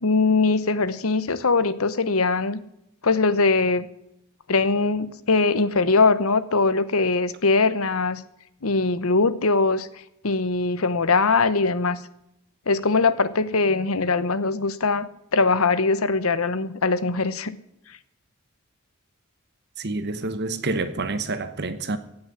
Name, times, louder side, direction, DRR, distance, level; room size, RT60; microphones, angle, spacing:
voice 1, 0.0-2.6 3.0-3.9 4.5-8.2 8.6-9.9 10.2-12.0 12.7-17.6, left 3 dB, 80° left, 1.0 m, -21 dB
voice 2, 19.8-22.0, right 3 dB, 50° right, 1.1 m, -28 dB
17.5 x 6.2 x 9.9 m
head